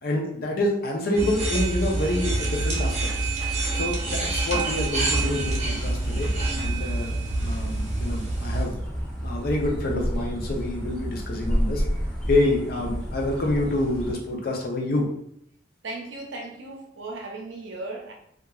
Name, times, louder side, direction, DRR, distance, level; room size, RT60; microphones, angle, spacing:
voice 1, 0.0-3.3 3.7-8.8 9.2-11.8 12.3-15.0, left 1 dB, 55° left, 0 dB, 0.6 m, -27 dB
sound 1, 1.1-8.6, right 2 dB, 40° right, 0.7 m, -27 dB
Hammer, 2.7-3.7 4.6-4.7 5.3-5.4 6.2-6.8 7.4-7.8, left 1 dB, 25° left, 1.3 m, -46 dB
sound 2, 4.8-14.1, equal, 5° left, 0.7 m, -31 dB
voice 2, 15.8-18.1, right 2 dB, 75° right, 1 dB, 0.6 m, -36 dB
2.9 x 2.3 x 2.3 m, 0.71 s
head